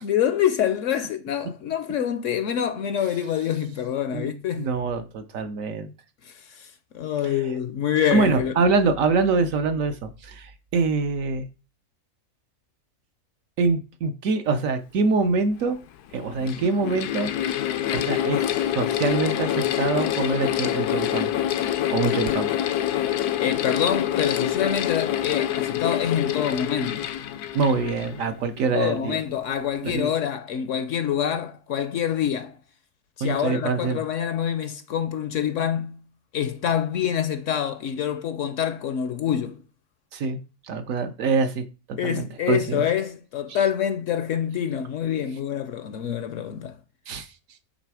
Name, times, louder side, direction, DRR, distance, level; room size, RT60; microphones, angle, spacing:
voice 1, 0.0-4.7 6.2-6.7 6.9-8.5 23.4-27.1 28.7-32.5 33.2-36.0 36.3-39.6 42.0-46.8, left 9 dB, 65° left, 0.8 m, -26 dB
voice 2, 4.1-5.9 7.2-7.4 8.1-11.5 13.6-15.8 16.1-17.3 17.9-18.5 18.7-21.3 21.9-22.5 27.5-29.2 29.8-30.1 33.2-34.0 40.1-40.4 40.7-42.8 43.5-43.7 47.1-47.3, right 4 dB, 65° right, 1.1 m, -25 dB
Mechanical fan, 15.2-15.3 16.1-28.8, left 11 dB, 85° left, 1.2 m, -26 dB
8.2 x 3.3 x 4.7 m
omnidirectional pair, 1.6 m